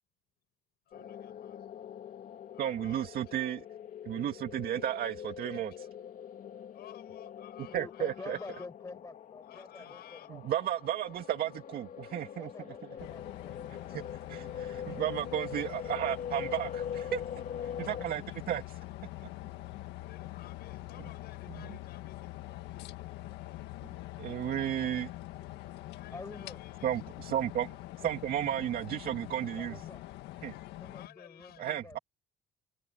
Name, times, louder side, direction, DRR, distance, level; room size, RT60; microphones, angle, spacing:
voice 1, 0.9-1.9 2.5-3.5 4.7-4.8 5.5-5.6 6.7-8.7 9.4-10.3 20.0-23.8 25.7-27.0 30.8-31.7, left 13 dB, 70° left, 7.3 m, -55 dB
sound 1, 0.9-18.1, left 8 dB, 50° left, 2.2 m, -43 dB
voice 2, 2.6-3.6 4.0-5.9 7.7-8.4 10.3-12.5 13.9-14.0 14.3-17.2 17.8-18.8 21.5-21.7 23.8-23.9 24.2-25.1 26.8-29.9 30.4-30.5 31.6-32.0, right 11 dB, 60° right, 2.3 m, -33 dB
voice 3, 7.6-10.4 12.4-14.6 26.1-26.6 29.6-30.0 30.8-32.0, left 3 dB, 20° left, 5.4 m, -48 dB
sound 2, 13.0-31.1, left 16 dB, 90° left, 1.7 m, -44 dB
cardioid pair, 110°, 17 cm